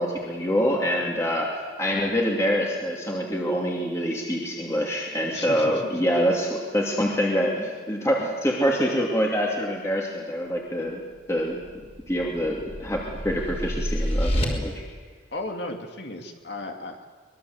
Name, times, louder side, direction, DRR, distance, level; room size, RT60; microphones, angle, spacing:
voice 1, 0.0-11.0 11.3-11.6 12.1-14.8, equal, 15° left, -2 dB, 2.6 m, -25 dB
voice 2, 5.3-5.9 15.3-17.0, left 2 dB, 60° left, 3 dB, 2.5 m, -35 dB
sound 1, 11.6-14.4, equal, 30° left, 4.4 m, -28 dB
24.0 x 21.5 x 8.1 m, 1.5 s
head